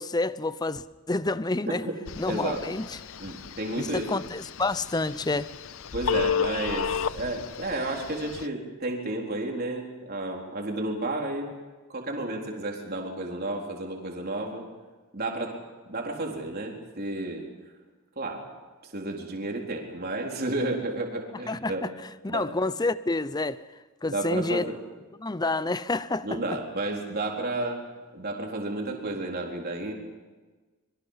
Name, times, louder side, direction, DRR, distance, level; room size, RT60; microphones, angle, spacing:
voice 1, 0.0-1.9 2.2-3.0 3.8-5.5 21.5-23.6 24.0-24.6 25.2-26.6, left 2 dB, 20° left, 0.6 m, -29 dB
Telephone, 2.1-8.5, left 7 dB, 65° left, 0.6 m, -33 dB
voice 2, 2.3-2.7 3.2-4.1 5.9-11.5 11.9-14.6 15.1-15.5 15.9-17.4 18.2-18.4 18.8-21.9 22.3-22.5 24.0-24.8 26.2-27.8 28.1-29.9, right 2 dB, 45° right, 4.1 m, -32 dB
25.5 x 23.0 x 5.8 m
head